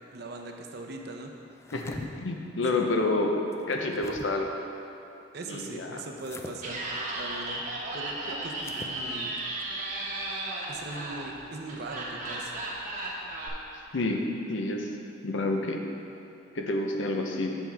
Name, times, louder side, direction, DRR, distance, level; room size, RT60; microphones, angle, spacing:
voice 1, 0.1-1.3 2.7-2.9 5.3-6.8 7.1-7.6 7.9-9.3 10.7-12.6, right 2 dB, 60° right, 3 dB, 0.7 m, -40 dB
sound 1, 1.5-2.1 3.5-4.3 6.2-6.6 8.5-9.0, left 2 dB, 15° left, 0.3 m, -43 dB
voice 2, 1.7-4.6 5.5-6.0 13.9-14.2 14.5-14.9 15.2-15.8 16.5-17.6, left 2 dB, 85° left, 2 dB, 0.7 m, -29 dB
Laughter, 6.6-13.5, right 2 dB, 45° right, 1.1 m, -35 dB
7.4 x 7.2 x 3.5 m, 2.8 s
head